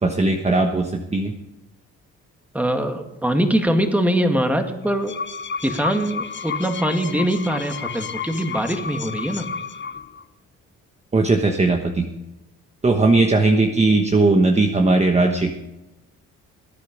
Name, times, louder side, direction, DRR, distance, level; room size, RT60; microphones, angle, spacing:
voice 1, 0.0-1.4 11.1-12.1 12.8-15.5, right 3 dB, 20° right, 4 dB, 1.2 m, -18 dB
voice 2, 2.5-5.2 5.6-9.5, right 1 dB, 5° right, 5 dB, 1.9 m, -22 dB
sound 1, 4.8-10.2, left 5 dB, 40° left, 1.0 m, -31 dB
19.5 x 9.4 x 5.2 m, 0.97 s
cardioid pair, 90°, 30 cm